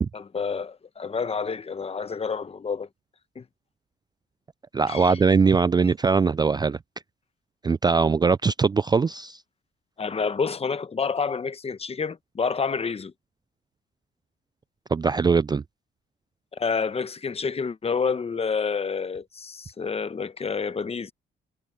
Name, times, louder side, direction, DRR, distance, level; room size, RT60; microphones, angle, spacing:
voice 1, 0.1-2.9 3.3-3.4 4.9-5.2 10.0-13.1 16.5-21.1, left 5 dB, 30° left, 0.9 m, -28 dB
voice 2, 4.7-6.8 7.6-9.4 14.9-15.6, right 5 dB, 20° right, 0.3 m, -21 dB
cardioid pair, 90°, 20 cm